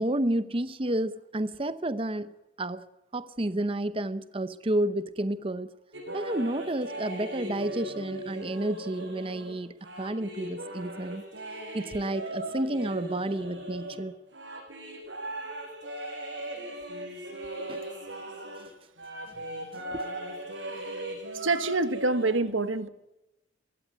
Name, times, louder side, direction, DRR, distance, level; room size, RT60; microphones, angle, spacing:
voice 1, 0.0-2.9 3.1-5.7 6.1-11.2 11.7-14.2 17.6-17.8 19.9-20.0, right 1 dB, 30° right, 0.7 m, -31 dB
sound 1, 5.9-18.7 19.0-22.4, right 1 dB, 65° right, 7.2 m, -38 dB
voice 2, 21.3-22.9, right 3 dB, 90° right, 1.6 m, -26 dB
22.0 x 16.5 x 9.4 m
head